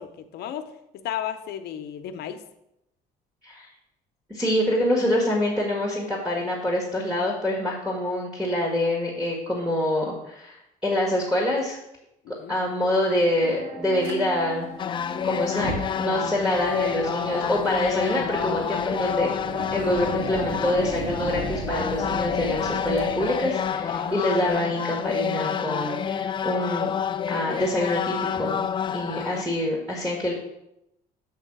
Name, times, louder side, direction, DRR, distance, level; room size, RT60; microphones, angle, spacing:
voice 1, 0.0-2.4 12.4-12.5 18.9-19.3 23.9-24.2, left 10 dB, 70° left, 9 dB, 0.7 m, -34 dB
voice 2, 4.3-10.6 10.8-11.8 12.5-14.7 15.2-19.3 19.7-26.9 27.3-28.6 28.9-30.3, left 1 dB, 5° right, -3 dB, 1.7 m, -26 dB
sound 1, 13.3-26.2, right 2 dB, 50° right, 2.5 m, -42 dB
Fire, 14.0-14.2 15.4-24.5, right 2 dB, 85° right, 1.6 m, -37 dB
sound 2, 14.8-29.4, left 8 dB, 30° left, 0.4 m, -28 dB
8.1 x 3.7 x 6.1 m, 0.84 s
cardioid pair, 110°, 17 cm